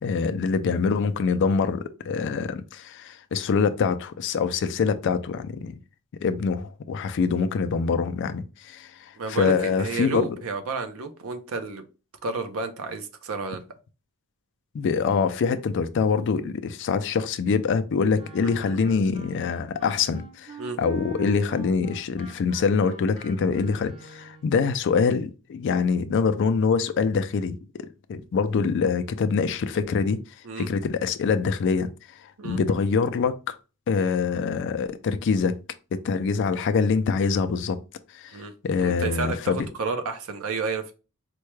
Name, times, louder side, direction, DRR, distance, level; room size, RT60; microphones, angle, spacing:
voice 1, 0.0-5.8 6.2-10.4 14.7-27.8 28.1-30.2 30.6-31.9 32.2-33.5 33.9-35.6 35.9-37.8 38.1-39.7, left 5 dB, 55° left, 0.3 m, -25 dB
voice 2, 9.2-11.8 12.2-13.6 18.4-18.8 20.6-20.8 30.4-30.7 32.4-32.6 38.3-38.5 38.8-40.9, right 4 dB, 65° right, 0.6 m, -31 dB
Wind instrument woodwind instrument, 18.1-24.5, right 3 dB, 25° right, 0.6 m, -42 dB
4.4 x 2.2 x 3.1 m
head